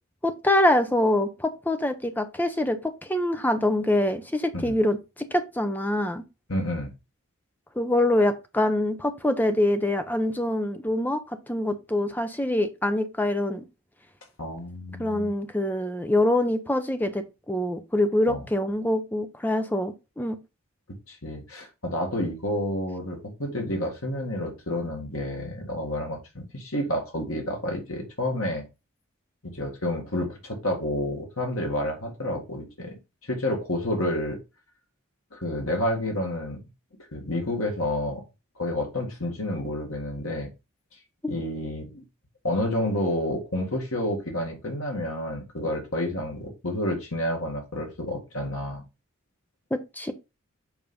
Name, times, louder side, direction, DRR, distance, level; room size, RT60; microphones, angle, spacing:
voice 1, 0.2-6.2 7.8-13.6 15.0-20.4 41.2-41.3 49.7-50.1, left 1 dB, 10° left, 0.7 m, -25 dB
voice 2, 6.5-6.9 14.4-15.3 18.3-18.4 21.1-28.6 29.4-32.9 33.2-34.4 35.3-36.6 37.1-38.2 38.6-40.5 41.3-42.0 42.4-48.8, left 1 dB, 90° left, 2.0 m, -29 dB
7.0 x 4.1 x 3.7 m
head